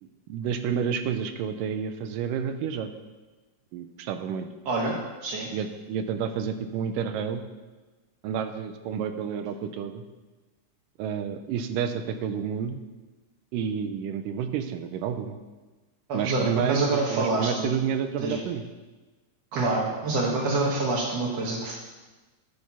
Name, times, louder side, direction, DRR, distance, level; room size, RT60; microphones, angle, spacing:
voice 1, 0.0-2.9 3.7-4.5 5.5-7.4 8.2-10.0 11.0-12.8 13.5-15.4 16.1-18.7, right 7 dB, 85° right, 8 dB, 2.3 m, -30 dB
voice 2, 4.7-5.0 5.2-5.5 16.1-17.7 18.2-18.4 19.5-21.7, right 2 dB, 60° right, -4 dB, 2.0 m, -26 dB
10.5 x 6.6 x 5.5 m, 1.2 s
omnidirectional pair, 3.8 m